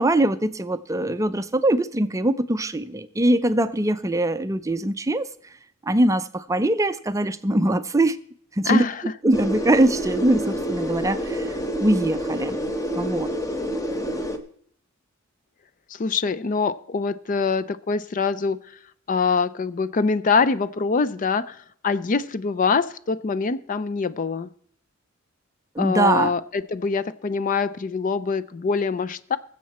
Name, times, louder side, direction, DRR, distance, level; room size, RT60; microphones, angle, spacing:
voice 1, 0.0-5.3 5.9-8.2 8.6-8.8 9.2-11.5 11.8-12.6 12.9-13.3 25.8-26.3, right 1 dB, 15° right, 11 dB, 0.5 m, -22 dB
voice 2, 8.7-9.0 15.9-18.6 19.1-21.6 21.8-24.5 25.8-29.4, left 5 dB, 40° left, 16 dB, 0.4 m, -24 dB
sound 1, 9.3-14.4, equal, 15° left, 0.9 m, -28 dB
20.5 x 7.5 x 4.2 m, 0.62 s
head